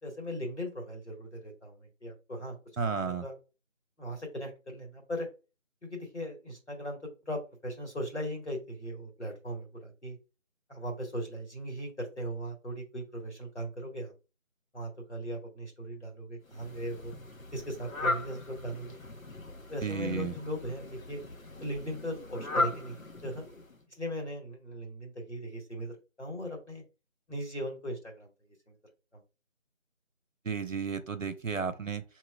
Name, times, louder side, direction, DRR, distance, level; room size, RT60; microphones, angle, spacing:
voice 1, 0.0-2.6 2.9-3.4 4.0-5.3 5.8-10.2 10.7-14.1 14.7-17.1 17.5-19.0 19.7-21.2 21.6-23.0 23.2-23.4 23.9-26.8 27.3-28.3 28.7-28.8 29.1-29.2, equal, 60° left, 1.7 m, -38 dB
voice 2, 2.8-3.2 19.8-20.3 30.4-32.0, right 5 dB, 70° right, 0.8 m, -33 dB
Fowl, 16.5-23.8, left 2 dB, 85° left, 1.0 m, -37 dB
5.7 x 2.9 x 2.3 m
figure-of-eight pair, 180°, 40 cm